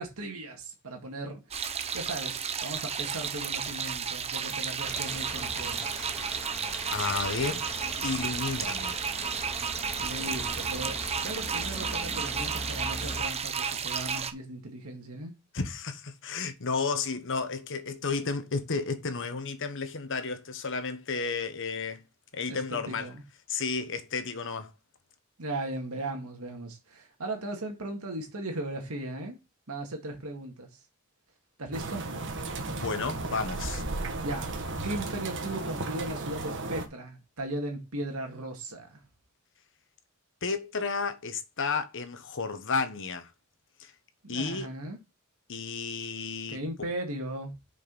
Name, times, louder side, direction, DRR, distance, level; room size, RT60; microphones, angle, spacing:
voice 1, 0.0-5.9 10.0-15.3 22.5-23.2 25.4-29.4 29.7-30.8 31.6-32.1 34.2-39.0 44.2-45.0 46.5-47.5, right 1 dB, 75° right, 2.0 m, -37 dB
sound 1, 1.5-14.3, right 6 dB, 30° right, 0.8 m, -33 dB
sound 2, 4.8-13.2, equal, 5° left, 2.6 m, -41 dB
voice 2, 6.9-7.6 8.0-9.1 15.5-22.0 22.3-23.1 23.5-24.7 32.7-33.8 40.4-43.3 43.8-43.9 44.3-44.7 45.5-46.6, left 4 dB, 60° left, 1.2 m, -32 dB
sound 3, 31.7-36.9, right 2 dB, 60° right, 1.5 m, -34 dB
6.4 x 5.3 x 5.3 m
head